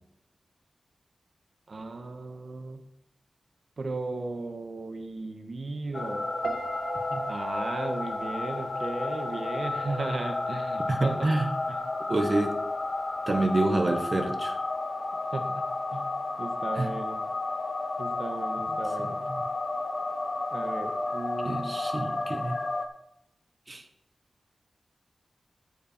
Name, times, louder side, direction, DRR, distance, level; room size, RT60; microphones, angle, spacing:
voice 1, 1.7-2.8 3.8-6.3 7.3-11.3 11.7-11.8 15.3-15.6 15.9-16.0 16.4-17.2 18.0-19.2 20.5-21.8, right 3 dB, 65° right, 5 dB, 1.5 m, -36 dB
sound 1, 5.9-22.9, left 2 dB, 45° left, 1.0 m, -32 dB
Piano, 6.4-9.5 9.8-10.3, right 4 dB, 80° right, 1.2 m, -39 dB
voice 2, 10.9-11.5 12.1-12.5 13.3-14.5 16.7-16.9 19.0-19.4 21.4-22.6 23.7-23.8, right 2 dB, 40° right, 5 dB, 1.5 m, -27 dB
13.0 x 6.8 x 4.5 m, 0.80 s
wide cardioid pair, 110°, 0 cm